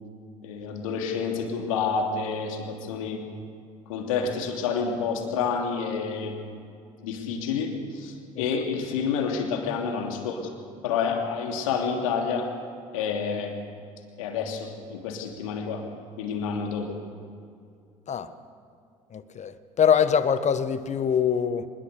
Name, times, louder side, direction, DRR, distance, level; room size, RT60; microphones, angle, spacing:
voice 1, 0.4-3.2 3.9-6.4 7.0-10.4 10.8-12.5 12.9-13.5 14.2-15.9 16.2-16.9, left 5 dB, 75° left, 2 dB, 3.0 m, -29 dB
voice 2, 19.1-21.7, left 7 dB, 40° left, 12 dB, 1.5 m, -24 dB
24.5 x 21.0 x 6.8 m, 2.4 s
hypercardioid pair, 55°, 17 cm